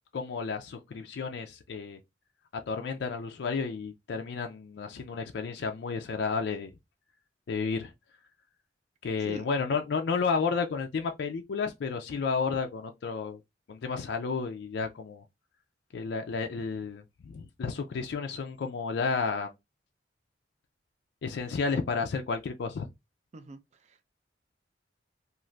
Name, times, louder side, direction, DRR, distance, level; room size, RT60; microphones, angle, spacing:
voice 1, 0.1-2.0 2.7-6.7 7.5-7.9 9.0-13.4 13.7-15.2 15.9-19.5 21.2-22.9, left 5 dB, 65° left, 0.4 m, -32 dB
voice 2, 23.3-24.0, right 2 dB, 40° right, 0.4 m, -44 dB
2.5 x 2.5 x 3.1 m
head